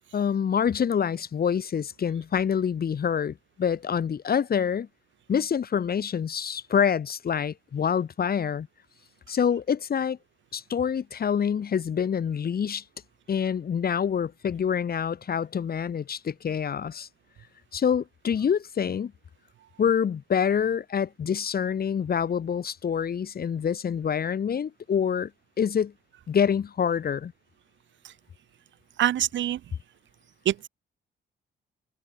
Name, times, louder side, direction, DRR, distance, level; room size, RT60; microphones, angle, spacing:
voice 1, 0.1-4.9 5.3-8.7 9.3-10.2 10.5-12.8 13.3-17.1 17.7-19.1 19.8-25.3 25.6-25.9 26.3-27.3, left 7 dB, 50° left, 3.5 m, -26 dB
voice 2, 29.0-29.6 30.5-30.7, right 12 dB, 70° right, 1.8 m, -24 dB
cardioid pair, 90°, 20 cm